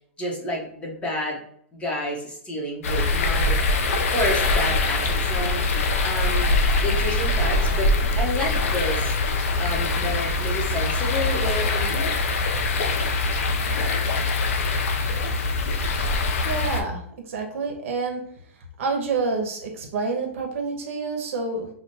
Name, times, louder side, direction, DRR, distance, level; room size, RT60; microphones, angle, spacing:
voice 1, 0.2-1.4 1.7-3.6 4.0-5.6 6.0-12.1, left 1 dB, 15° left, -2 dB, 1.1 m, -30 dB
sound 1, 2.8-16.8, left 3 dB, 80° left, 0.7 m, -23 dB
voice 2, 16.4-17.0 17.3-18.3 18.8-21.7, right 4 dB, 65° right, 3 dB, 1.0 m, -28 dB
5.0 x 2.4 x 2.8 m, 0.63 s
hypercardioid pair, 145°, 8 cm